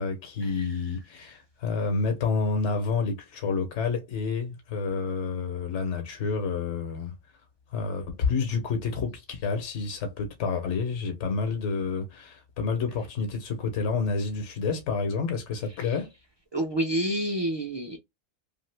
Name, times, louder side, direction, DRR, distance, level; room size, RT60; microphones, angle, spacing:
voice 1, 0.0-7.1 7.7-16.1, left 4 dB, 80° left, 1.1 m, -29 dB
voice 2, 16.5-18.0, right 1 dB, 40° right, 0.4 m, -28 dB
2.7 x 2.5 x 3.2 m
omnidirectional pair, 1.2 m